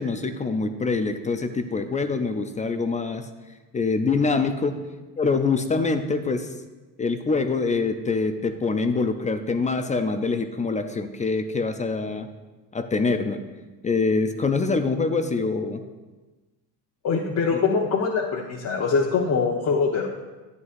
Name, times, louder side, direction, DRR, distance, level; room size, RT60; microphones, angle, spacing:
voice 1, 0.0-3.3 3.7-4.8 5.2-6.5 7.0-12.3 12.7-13.4 13.8-15.8 17.5-17.6, left 4 dB, 20° left, 8 dB, 0.4 m, -25 dB
voice 2, 17.0-20.1, left 5 dB, 40° left, -2 dB, 1.0 m, -23 dB
11.0 x 9.4 x 2.5 m, 1.2 s
supercardioid pair, 105°, 42 cm